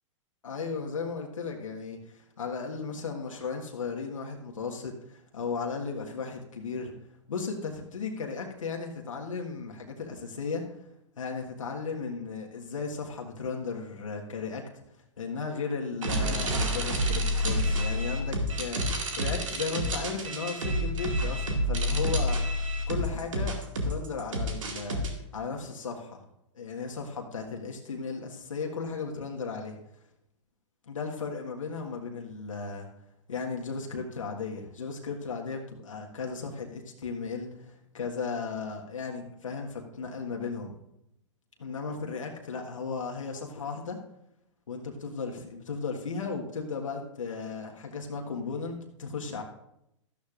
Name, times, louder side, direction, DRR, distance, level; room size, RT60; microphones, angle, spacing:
voice 1, 0.4-6.9 7.3-10.8 11.2-14.6 15.2-22.4 22.9-25.0 25.3-26.2 26.5-29.7 30.9-32.9 33.3-40.7 41.6-44.0 44.7-49.4, left 5 dB, 80° left, 1 dB, 1.5 m, -35 dB
sound 1, 16.0-25.1, equal, 80° right, 2.1 m, -29 dB
13.0 x 12.0 x 2.5 m, 0.83 s
hypercardioid pair, 115°, 16 cm